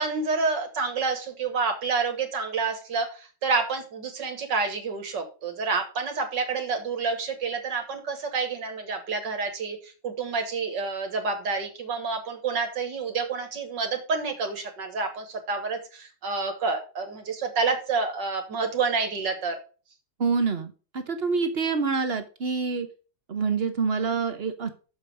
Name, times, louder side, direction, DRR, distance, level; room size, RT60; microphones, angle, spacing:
voice 1, 0.0-19.6, right 4 dB, 70° right, 5 dB, 2.0 m, -28 dB
voice 2, 20.2-22.9 23.3-24.8, right 5 dB, 40° right, 8 dB, 0.9 m, -27 dB
7.0 x 5.1 x 6.1 m, 0.35 s
omnidirectional pair, 2.0 m